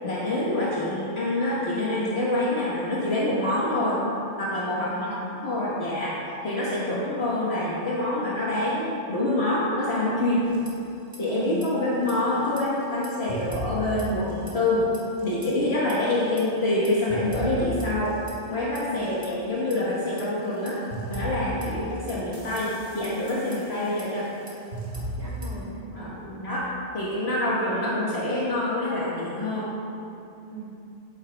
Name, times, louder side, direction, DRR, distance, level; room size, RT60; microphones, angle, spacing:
voice 1, 0.0-4.0 4.4-5.1 5.4-10.5 11.2-14.9 15.2-18.1 18.5-20.8 21.1-24.3 25.9-26.1 26.4-26.6 26.9-29.7, left 1 dB, 60° left, -8 dB, 1.6 m, -26 dB
voice 2, 4.8-5.4 6.6-7.1 10.4-10.8 11.3-11.7 18.9-19.3 21.6-22.0 25.2-26.6 27.4-27.9 30.4-30.7, right 2 dB, 35° right, -8 dB, 2.2 m, -38 dB
sound 1, 10.4-11.2 11.4-11.7 12.0-14.7 14.9-15.5 15.9-19.3 19.7-25.7, right 1 dB, 60° right, 1.9 m, -37 dB
12.5 x 8.9 x 2.3 m, 2.7 s
omnidirectional pair, 1.2 m